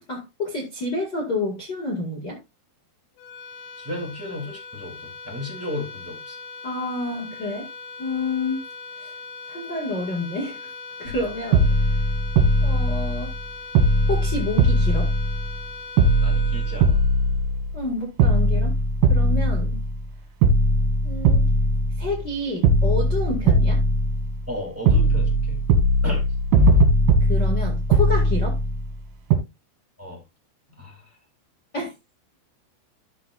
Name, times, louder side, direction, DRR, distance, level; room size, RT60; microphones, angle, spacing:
voice 1, 0.1-2.4 6.6-7.7 8.0-8.6 9.0-9.1 9.5-10.7 11.0-11.9 12.6-13.3 14.1-15.1 17.7-18.7 19.1-19.8 21.0-21.4 22.0-23.8 27.2-28.6 31.7-31.9, left 2 dB, 50° left, 1.2 m, -29 dB
sound 1, 3.2-17.7, left 4 dB, 80° left, 4.0 m, -39 dB
voice 2, 3.8-6.4 16.2-17.0 24.5-25.6 26.0-26.3 30.0-30.2 30.8-31.0, left 1 dB, 5° right, 1.5 m, -34 dB
sound 2, 11.1-11.2 11.5-13.4 13.8-15.7 16.0-17.8 18.2-20.1 20.4-22.3 22.6-24.5 24.9-29.0 29.3-29.4, right 1 dB, 70° right, 4.3 m, -20 dB
14.0 x 6.1 x 2.5 m
omnidirectional pair, 5.7 m